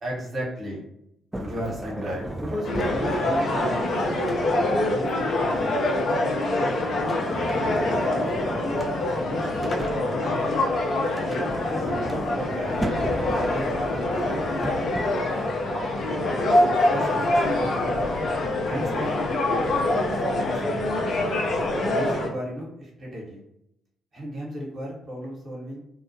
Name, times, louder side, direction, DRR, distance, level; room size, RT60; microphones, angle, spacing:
voice 1, 0.0-0.9 1.4-3.9 4.7-5.8 7.6-8.0 8.4-10.6 11.0-12.8 13.4-14.3 15.7-16.2 16.9-18.2 18.6-19.7 20.2-20.8 21.8-23.4 24.1-25.8, equal, 40° right, -4 dB, 1.1 m, -35 dB
Sliding door, 1.3-4.9 6.9-10.5 11.0-15.4, right 1 dB, 15° right, 0.3 m, -35 dB
sound 1, 2.6-22.3, left 1 dB, 55° left, 0.5 m, -25 dB
2.3 x 2.1 x 2.7 m, 0.79 s
hypercardioid pair, 45°, 0 cm